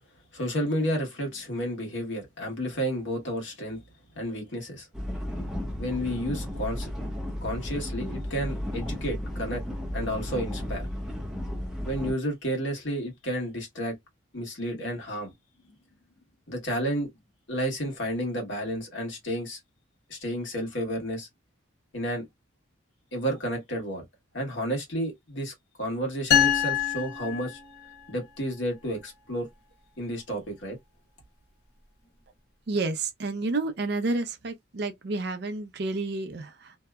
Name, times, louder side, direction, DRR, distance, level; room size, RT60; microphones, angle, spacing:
voice 1, 0.3-3.8 4.2-4.9 5.7-6.9 7.4-9.6 9.9-10.9 11.8-14.0 14.3-15.3 15.6-15.7 16.5-17.1 17.5-19.6 20.1-21.3 21.9-22.3 23.1-24.0 24.3-27.6 28.1-29.5 30.0-30.8, equal, 70° left, 1.2 m, -31 dB
sound 1, 4.9-12.1, left 1 dB, ahead, 0.6 m, -34 dB
sound 2, 26.3-28.1, left 9 dB, 55° left, 0.9 m, -25 dB
voice 2, 32.7-36.8, right 3 dB, 55° right, 0.5 m, -30 dB
2.7 x 2.1 x 2.3 m
head